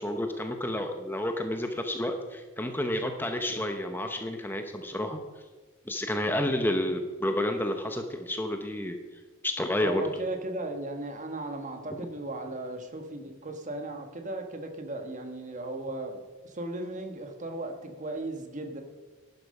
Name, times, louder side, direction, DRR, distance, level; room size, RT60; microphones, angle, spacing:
voice 1, 0.0-5.2 5.9-9.0 9.4-10.0, left 1 dB, 10° left, 5 dB, 0.8 m, -30 dB
voice 2, 9.8-18.8, right 2 dB, 35° right, 5 dB, 1.4 m, -36 dB
12.0 x 10.5 x 5.4 m, 1.3 s
head